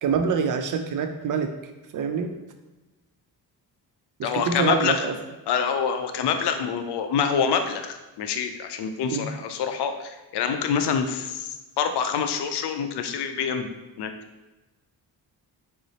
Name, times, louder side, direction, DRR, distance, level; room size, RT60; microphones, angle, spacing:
voice 1, 0.0-1.5 1.9-2.3 4.2-5.2 9.1-9.3, right 5 dB, 45° right, 7 dB, 0.5 m, -25 dB
voice 2, 4.2-5.1 5.5-13.7 14.0-14.1, left 6 dB, 60° left, 7 dB, 0.5 m, -26 dB
3.9 x 2.0 x 2.8 m, 1.1 s
supercardioid pair, 50°, 45 cm